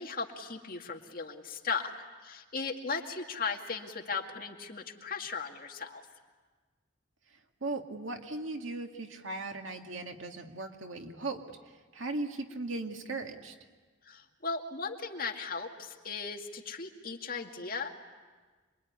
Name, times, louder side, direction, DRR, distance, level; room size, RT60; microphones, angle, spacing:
voice 1, 0.0-1.9 2.2-6.0 14.0-17.9, left 4 dB, 45° left, 2 dB, 2.3 m, -37 dB
voice 2, 7.6-11.4 11.9-13.5, right 2 dB, 85° right, 3 dB, 2.2 m, -37 dB
27.0 x 23.0 x 9.6 m, 1.4 s
head